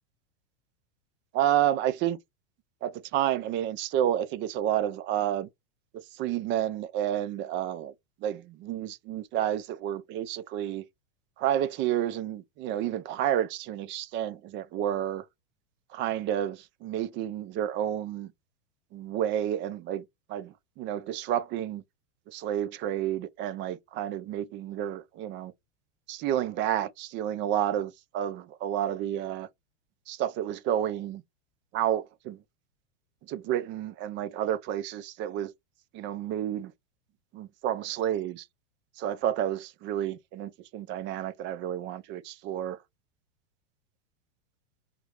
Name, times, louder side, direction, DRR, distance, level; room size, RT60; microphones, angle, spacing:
voice 1, 1.3-2.2 2.8-5.5 6.1-7.9 8.2-10.8 11.4-15.2 15.9-18.3 18.9-21.8 22.3-25.5 26.1-29.5 30.1-31.2 31.7-32.4 33.3-35.5 35.9-36.7 37.3-38.5 39.0-42.8, right 11 dB, 35° right, 0.5 m, -30 dB
5.1 x 3.1 x 2.9 m
supercardioid pair, 130°, 35 cm